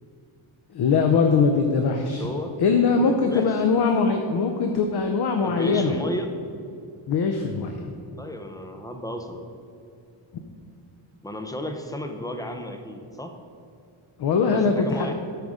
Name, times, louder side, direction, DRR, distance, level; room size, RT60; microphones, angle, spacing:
voice 1, 0.7-2.2 2.6-6.0 7.1-7.8 14.2-15.1, left 5 dB, 50° left, 5 dB, 0.7 m, -21 dB
voice 2, 2.1-2.6 3.0-3.6 5.4-6.4 8.2-9.5 11.2-13.4 14.5-15.1, left 1 dB, 10° left, 5 dB, 0.5 m, -33 dB
12.5 x 5.0 x 4.9 m, 2.5 s
wide cardioid pair, 160°, 50 cm